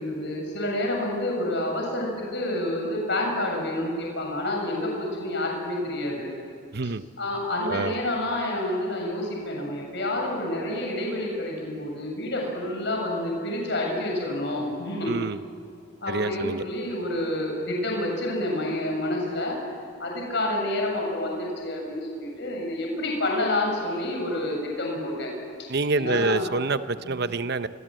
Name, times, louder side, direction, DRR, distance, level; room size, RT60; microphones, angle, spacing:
voice 1, 0.0-6.3 6.8-6.9 7.2-15.1 16.0-19.6 20.0-25.3 25.9-26.5 27.0-27.1, left 1 dB, 60° left, 0 dB, 7.1 m, -28 dB
voice 2, 7.7-8.0 15.1-15.4 16.1-16.6 25.7-27.7, right 3 dB, 55° right, 12 dB, 0.9 m, -27 dB
29.0 x 25.0 x 7.8 m, 2.4 s
head